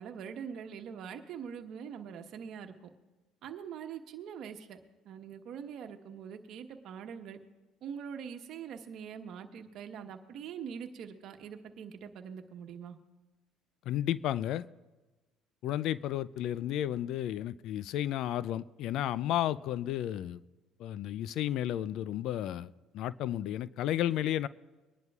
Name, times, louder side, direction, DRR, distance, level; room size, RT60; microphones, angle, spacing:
voice 1, 0.0-2.7 3.4-4.8 5.0-7.4 7.8-13.0, right 7 dB, 65° right, 1.1 m, -43 dB
voice 2, 13.9-14.7 15.6-20.4 20.8-24.5, left 12 dB, 70° left, 0.3 m, -32 dB
23.5 x 10.5 x 2.4 m
supercardioid pair, 80°, 0 cm